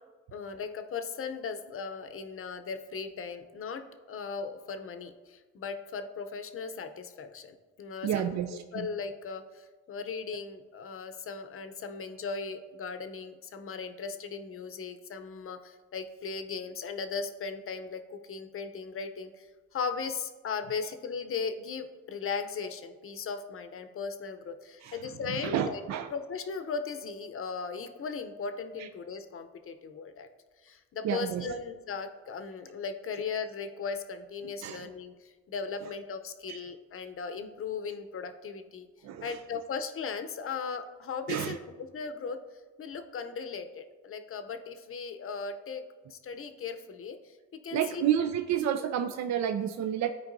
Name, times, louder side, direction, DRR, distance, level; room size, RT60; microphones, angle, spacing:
voice 1, 0.3-19.5 19.7-25.8 26.1-30.3 30.6-35.1 35.5-38.9 39.2-41.6 41.9-42.4 42.8-45.8 46.1-47.3 47.6-48.0, left 5 dB, 45° left, 8 dB, 0.7 m, -37 dB
voice 2, 8.0-8.9 24.8-25.0 25.3-26.1 31.0-31.6 34.6-34.8 36.5-36.6 39.0-39.4 41.3-41.6 47.7-50.1, right 10 dB, 65° right, 7 dB, 0.5 m, -30 dB
13.0 x 4.6 x 2.6 m, 1.3 s
cardioid pair, 90°, 30 cm